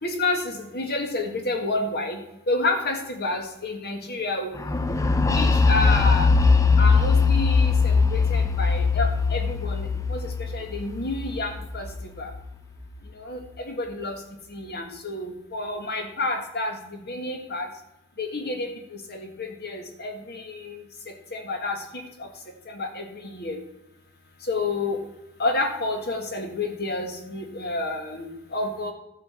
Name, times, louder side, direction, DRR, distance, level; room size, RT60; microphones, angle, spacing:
voice 1, 0.0-2.2 2.5-4.6 5.2-6.3 6.8-10.2 10.5-11.9 12.2-12.3 13.2-14.2 14.5-17.7 18.2-20.8 21.3-22.3 22.7-23.6 24.4-25.0 25.4-28.9, left 2 dB, 50° left, 4 dB, 1.7 m, -29 dB
sound 1, 4.7-12.4, left 4 dB, 15° left, 0.4 m, -21 dB
12.0 x 7.6 x 4.4 m, 0.88 s
head